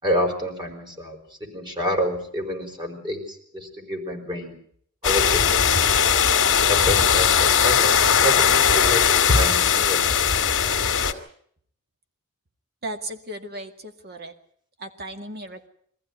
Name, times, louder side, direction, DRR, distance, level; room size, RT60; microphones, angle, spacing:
voice 1, 0.0-4.5 5.0-5.6 6.7-10.2, equal, 20° right, 3 dB, 5.0 m, -28 dB
sound 1, 5.0-11.1, left 7 dB, 60° left, 2.0 m, -19 dB
voice 2, 12.8-14.3 14.8-15.7, right 1 dB, 50° right, 6 dB, 2.1 m, -35 dB
23.5 x 15.0 x 9.3 m, 0.64 s
head